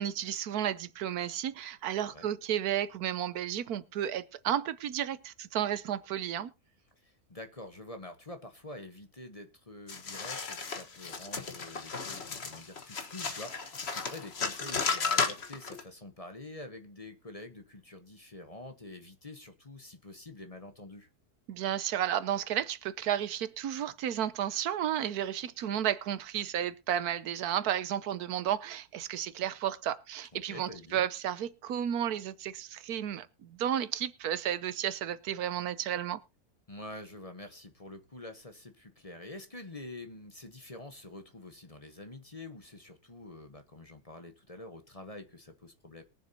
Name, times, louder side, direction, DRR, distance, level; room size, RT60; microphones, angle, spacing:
voice 1, 0.0-6.5 21.5-36.2, right 10 dB, 80° right, 1.3 m, -32 dB
voice 2, 7.0-21.1 30.3-31.0 36.7-46.0, left 2 dB, 25° left, 1.2 m, -47 dB
sound 1, 9.9-15.8, left 5 dB, 45° left, 1.6 m, -34 dB
22.0 x 7.3 x 2.8 m
omnidirectional pair, 1.6 m